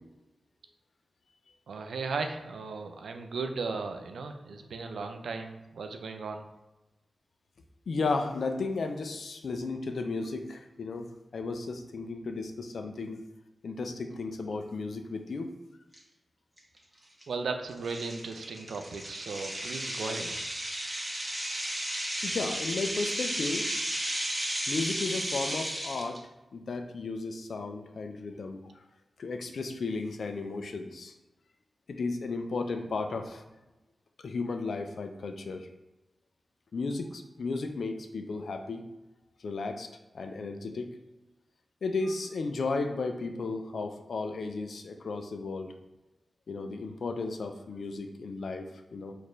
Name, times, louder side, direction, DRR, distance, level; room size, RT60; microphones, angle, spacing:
voice 1, 1.7-6.4 17.3-20.4, right 4 dB, 85° right, 6 dB, 0.3 m, -36 dB
voice 2, 7.9-11.1 11.3-13.2 13.6-15.5 22.2-23.6 24.4-26.2 26.5-28.6 29.2-31.1 31.9-33.4 34.2-35.7 36.7-38.8 39.4-39.9 40.1-40.9 41.8-45.7 46.5-49.1, left 3 dB, 75° left, 6 dB, 0.4 m, -34 dB
sound 1, 15.9-16.0 16.6-16.8 17.2-17.3 17.8-26.2, right 1 dB, 25° right, 1.0 m, -34 dB
4.2 x 2.5 x 3.1 m, 1.0 s
cardioid pair, 40°, 0 cm